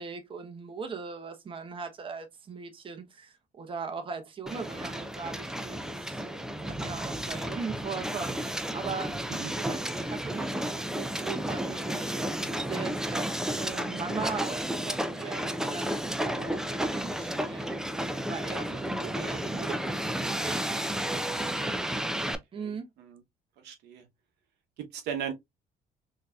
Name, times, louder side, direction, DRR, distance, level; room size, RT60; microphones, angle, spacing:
voice 1, 0.0-17.8 18.3-20.9 22.5-22.9, right 5 dB, 30° right, 0.8 m, -40 dB
Hiss, 4.5-22.3, right 1 dB, 5° right, 0.4 m, -32 dB
voice 2, 16.3-16.6 21.4-21.7 22.2-23.2 23.6-24.1 24.8-25.3, right 8 dB, 80° right, 0.8 m, -39 dB
3.8 x 2.7 x 2.2 m
cardioid pair, 110°, 17 cm